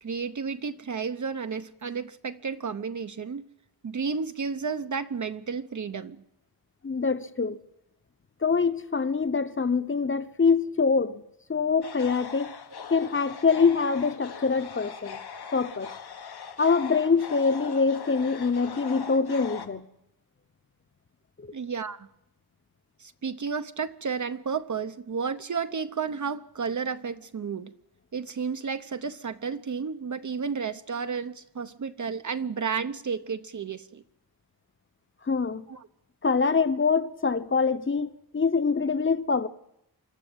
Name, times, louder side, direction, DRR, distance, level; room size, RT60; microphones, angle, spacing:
voice 1, 0.0-3.4 3.8-6.2 21.5-22.1 23.0-27.7 28.1-34.0 35.7-35.9, right 5 dB, 50° right, 0.8 m, -32 dB
voice 2, 6.8-7.6 8.4-11.2 11.5-12.5 12.9-15.2 15.5-15.9 16.6-19.8 35.3-35.6 36.2-39.5, left 5 dB, 30° left, 1.0 m, -24 dB
sound 1, 11.8-19.7, left 6 dB, 90° left, 1.7 m, -40 dB
25.5 x 13.0 x 8.0 m
wide cardioid pair, 95°, 38 cm